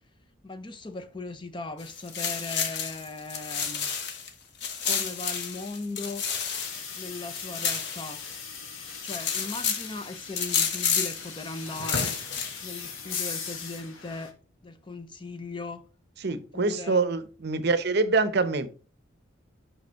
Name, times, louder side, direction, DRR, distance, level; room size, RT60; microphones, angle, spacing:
voice 1, 0.4-3.9 4.8-6.2 7.0-8.2 9.0-12.2 12.6-14.3 14.6-15.8 16.3-17.0, left 3 dB, 25° left, 0.6 m, -38 dB
sound 1, 1.8-4.3 4.6-8.6 8.9-9.9 10.4-11.3 11.7-12.8, left 6 dB, 55° left, 1.1 m, -30 dB
sound 2, 6.5-14.3, left 4 dB, 80° left, 1.3 m, -38 dB
voice 2, 16.2-18.7, right 3 dB, 55° right, 0.7 m, -25 dB
6.1 x 5.2 x 4.5 m
head